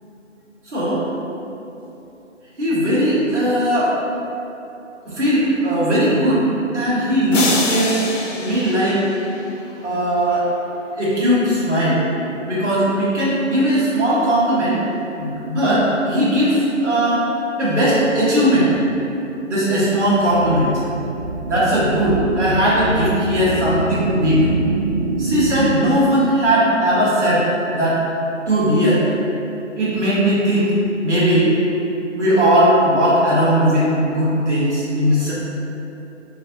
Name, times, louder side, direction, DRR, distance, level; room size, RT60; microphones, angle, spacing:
voice 1, 0.7-1.0 2.6-3.9 5.1-6.5 6.7-8.0 8.3-9.0 9.8-10.5 11.0-12.0 12.4-14.8 15.2-17.2 17.6-18.7 19.5-20.7 21.4-24.4 25.2-27.4 27.7-28.0 28.5-29.0 29.7-30.7 31.0-31.5 32.1-35.3, equal, 65° right, -10 dB, 1.2 m, -18 dB
sound 1, 7.3-9.7, left 2 dB, 75° left, 0.6 m, -25 dB
sound 2, 19.3-25.7, right 3 dB, 35° right, 1.5 m, -26 dB
3.1 x 2.6 x 2.6 m, 2.9 s
figure-of-eight pair, 150°, 38 cm